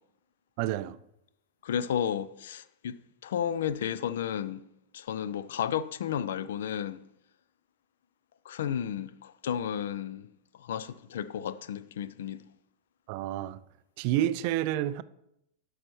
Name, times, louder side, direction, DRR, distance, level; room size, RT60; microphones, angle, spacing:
voice 1, 0.6-1.0 13.1-13.6 14.0-15.0, right 13 dB, 45° right, 0.3 m, -29 dB
voice 2, 1.6-4.6 4.9-7.0 8.5-10.3 10.6-12.4, left 9 dB, 60° left, 0.3 m, -33 dB
11.5 x 6.4 x 3.0 m
figure-of-eight pair, 90°, 0 cm